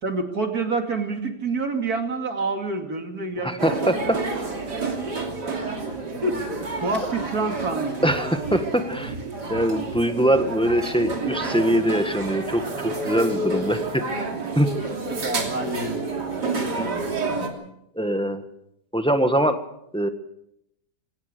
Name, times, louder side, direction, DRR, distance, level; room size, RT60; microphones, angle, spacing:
voice 1, 0.0-4.1 6.2-6.3 6.8-8.4 15.1-16.1, right 3 dB, 60° right, 5 dB, 2.9 m, -27 dB
voice 2, 3.4-4.2 8.0-9.1 9.5-14.3 14.5-14.7 16.8-16.9 17.9-18.4 18.9-19.6 19.9-20.1, right 1 dB, 5° left, 7 dB, 1.4 m, -23 dB
sound 1, 3.6-17.5, right 3 dB, 80° right, 3.7 m, -29 dB
22.5 x 18.5 x 6.8 m, 0.78 s
omnidirectional pair, 1.8 m